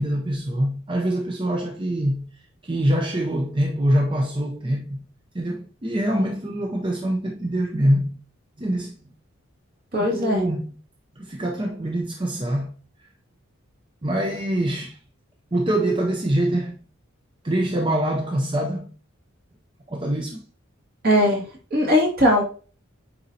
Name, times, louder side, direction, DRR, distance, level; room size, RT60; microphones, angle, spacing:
voice 1, 0.0-2.3 2.6-5.0 5.3-8.2 8.6-8.9 10.0-10.7 11.2-12.7 14.0-15.0 15.5-16.8 17.4-18.9 19.9-20.4, right 1 dB, 25° right, 0.6 m, -24 dB
voice 2, 9.9-10.4 21.0-21.4 21.7-22.4, equal, 50° right, 2.4 m, -19 dB
8.9 x 4.1 x 2.8 m
head